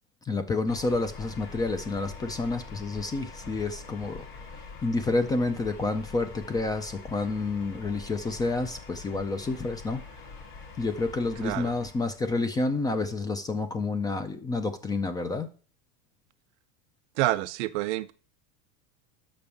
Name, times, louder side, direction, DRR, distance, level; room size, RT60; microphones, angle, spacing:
voice 1, 0.2-4.2 4.8-10.0 10.8-15.5, left 3 dB, 10° left, 0.4 m, -29 dB
sound 1, 0.7-12.3, left 4 dB, 35° left, 2.8 m, -44 dB
voice 2, 17.2-18.1, right 16 dB, 75° right, 0.7 m, -28 dB
6.0 x 5.2 x 6.8 m
supercardioid pair, 150°, 34 cm